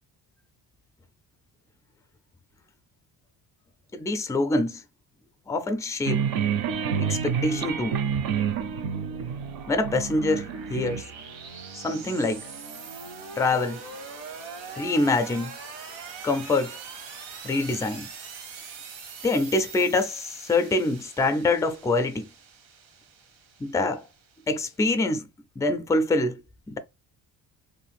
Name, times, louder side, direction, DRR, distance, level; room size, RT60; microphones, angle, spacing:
voice 1, 3.9-4.8 5.5-6.3 7.0-8.0 9.7-11.0 11.8-12.4 13.4-13.8 14.7-15.6 16.2-16.8 17.4-18.1 19.2-22.2 23.6-24.1 24.5-25.3 25.6-26.4 26.7-26.8, left 2 dB, 10° left, 0.3 m, -25 dB
sound 1, 6.1-11.0, right 7 dB, 55° right, 0.5 m, -28 dB
sound 2, 7.5-24.9, right 5 dB, 90° right, 1.0 m, -43 dB
2.6 x 2.4 x 3.4 m
cardioid pair, 105°, 44 cm